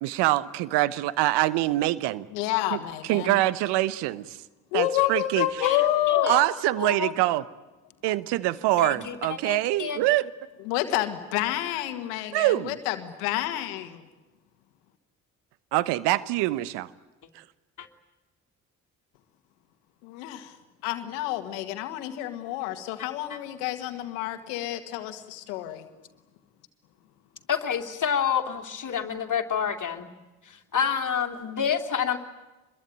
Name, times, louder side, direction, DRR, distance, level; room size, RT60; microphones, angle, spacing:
voice 1, 0.0-2.3 2.7-2.8 3.1-4.4 4.7-5.5 6.3-7.4 8.0-10.3 12.3-12.7 15.7-16.9, right 16 dB, 70° right, 18 dB, 1.1 m, -24 dB
voice 2, 2.3-3.4 4.7-6.3 10.6-14.1 20.0-20.6 20.8-25.9, left 14 dB, 80° left, 9 dB, 1.9 m, -29 dB
voice 3, 5.6-6.4 6.8-7.1 8.8-9.2 9.4-10.0 17.8-17.9 27.5-30.1 30.4-32.2, left 7 dB, 45° left, 5 dB, 3.0 m, -28 dB
25.0 x 22.5 x 9.3 m, 1.1 s
hypercardioid pair, 45°, 42 cm